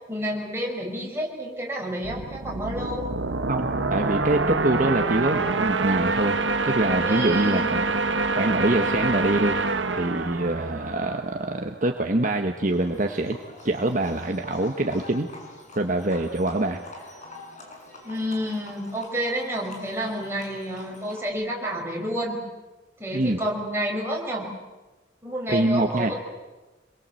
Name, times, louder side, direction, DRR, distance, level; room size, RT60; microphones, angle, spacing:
voice 1, 0.1-3.0 7.0-7.7 18.0-22.4 23.0-24.5 25.2-26.1, equal, 15° right, -1 dB, 5.6 m, -29 dB
sound 1, 2.0-11.6, right 3 dB, 90° right, 1.4 m, -26 dB
voice 2, 3.5-6.4 6.6-7.9 8.3-9.6 9.9-13.4 13.6-15.3 15.8-16.8 23.1-23.4 25.5-26.1, right 2 dB, 45° right, 4 dB, 1.4 m, -24 dB
Livestock farm animals working animals, 12.6-21.3, left 2 dB, 40° left, 6.0 m, -45 dB
27.0 x 22.5 x 7.8 m, 1.2 s
head